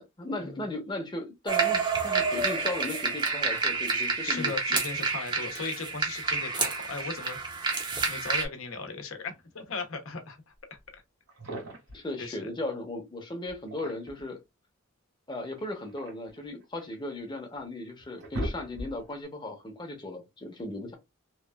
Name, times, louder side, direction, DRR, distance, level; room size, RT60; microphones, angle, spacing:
voice 1, 0.0-4.8 11.9-14.4 15.3-20.9, left 2 dB, 20° left, 0.7 m, -37 dB
sound 1, 1.5-8.4, right 4 dB, 20° right, 0.5 m, -29 dB
voice 2, 4.2-10.8 12.2-12.5, left 4 dB, 80° left, 0.7 m, -38 dB
sound 2, 10.8-10.9 11.3-12.0 13.5-14.3 15.6-17.0 17.6-17.7 18.0-19.1, equal, 75° right, 1.6 m, -38 dB
3.0 x 2.3 x 2.2 m
head